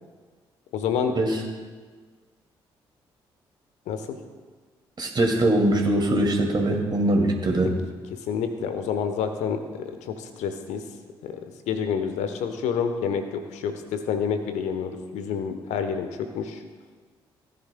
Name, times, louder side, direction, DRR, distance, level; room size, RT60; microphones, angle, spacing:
voice 1, 0.7-1.1 3.9-4.2 8.1-10.8 11.2-11.4 11.7-16.6, left 6 dB, 65° left, 8 dB, 1.0 m, -28 dB
voice 2, 5.0-7.7, right 1 dB, 35° right, 1 dB, 2.5 m, -22 dB
18.0 x 10.5 x 2.3 m, 1.5 s
figure-of-eight pair, 45°, 13 cm